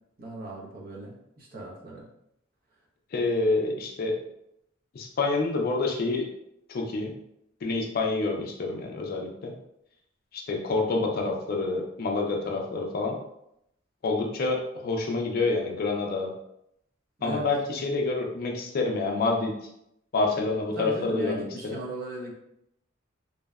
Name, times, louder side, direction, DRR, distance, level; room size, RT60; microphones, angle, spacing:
voice 1, 0.2-2.1 17.2-17.5 20.8-22.3, right 2 dB, 50° right, -3 dB, 0.6 m, -37 dB
voice 2, 3.1-4.2 4.9-6.3 6.7-7.1 7.6-9.5 10.3-13.2 14.0-16.3 17.2-19.5 20.1-21.8, left 3 dB, 50° left, 1 dB, 0.4 m, -27 dB
2.6 x 2.1 x 2.3 m, 0.78 s
head